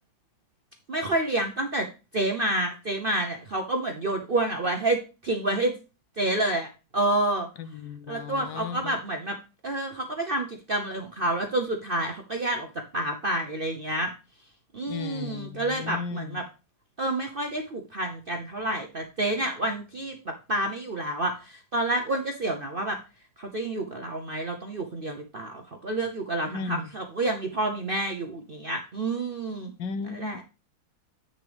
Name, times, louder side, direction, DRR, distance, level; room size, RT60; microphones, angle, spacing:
voice 1, 0.9-1.9 2.1-5.7 6.2-7.5 8.1-9.4 9.6-14.1 14.7-16.4 17.0-23.0 23.4-29.7 30.0-30.4, right 1 dB, 50° right, 4 dB, 0.6 m, -29 dB
voice 2, 7.6-9.0 14.9-16.4 26.5-26.9 29.8-30.4, left 6 dB, 80° left, 11 dB, 1.4 m, -35 dB
8.3 x 6.5 x 3.3 m, 0.31 s
omnidirectional pair, 2.0 m